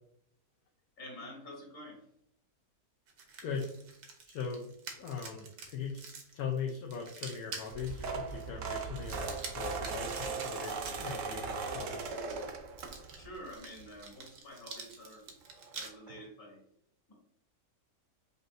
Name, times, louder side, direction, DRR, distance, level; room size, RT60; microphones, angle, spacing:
voice 1, 1.0-2.0 13.1-15.3 15.7-16.6, equal, 55° left, -3 dB, 2.0 m, -48 dB
sound 1, 3.1-11.1 12.2-15.9, right 4 dB, 80° right, 1.3 m, -47 dB
voice 2, 4.3-6.0 6.3-12.1, left 6 dB, 75° left, 0 dB, 1.1 m, -40 dB
sound 2, 7.7-13.3 13.8-14.1 15.3-15.4 15.6-15.7 16.1-16.2, right 4 dB, 65° right, 0.9 m, -38 dB
5.4 x 2.6 x 2.6 m, 0.71 s
omnidirectional pair, 1.6 m